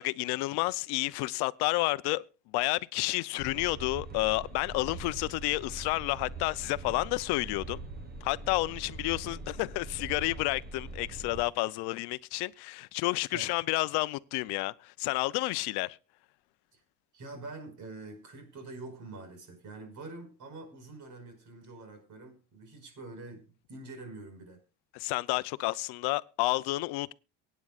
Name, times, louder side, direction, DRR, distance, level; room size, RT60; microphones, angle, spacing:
voice 1, 0.0-2.2 2.5-7.8 8.2-16.0 24.9-27.1, left 20 dB, 85° left, 0.7 m, -30 dB
sound 1, 3.4-11.4, right 3 dB, 25° right, 1.4 m, -43 dB
voice 2, 17.1-24.6, right 3 dB, 50° right, 5.4 m, -45 dB
23.5 x 9.4 x 2.5 m
cardioid pair, 150°, 38 cm